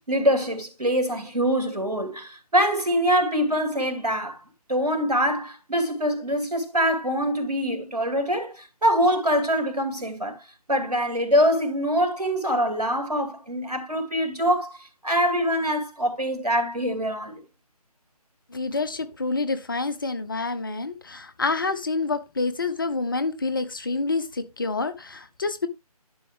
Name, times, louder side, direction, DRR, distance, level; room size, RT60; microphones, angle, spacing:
voice 1, 0.1-4.4 4.7-10.4 10.7-17.4, equal, 80° right, 2.4 m, -24 dB
voice 2, 18.5-25.7, left 3 dB, 35° left, 0.6 m, -28 dB
11.0 x 5.7 x 3.3 m
figure-of-eight pair, 150°, 20 cm